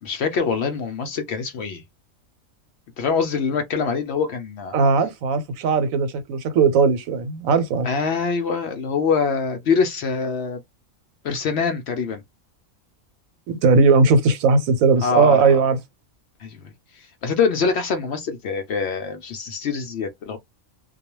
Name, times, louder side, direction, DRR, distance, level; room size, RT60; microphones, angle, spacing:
voice 1, 0.0-1.8 3.0-4.7 7.8-10.6 11.2-12.2 15.0-15.6 16.4-20.4, left 5 dB, 65° left, 0.7 m, -24 dB
voice 2, 4.7-7.9 13.5-15.8, right 4 dB, 80° right, 1.1 m, -18 dB
2.3 x 2.2 x 2.9 m
omnidirectional pair, 1.4 m